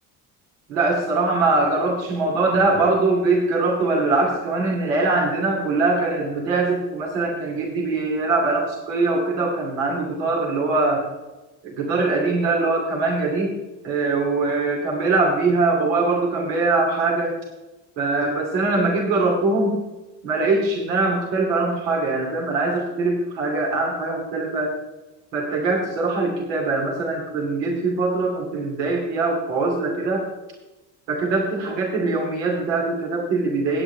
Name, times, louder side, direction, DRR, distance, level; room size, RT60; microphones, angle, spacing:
voice 1, 0.7-11.0 11.6-13.5 13.8-17.3 18.0-19.8 20.2-24.8 25.3-30.3 31.1-33.8, right 3 dB, 85° right, -1 dB, 2.8 m, -22 dB
18.0 x 9.1 x 3.3 m, 1.1 s
hypercardioid pair, 65°, 48 cm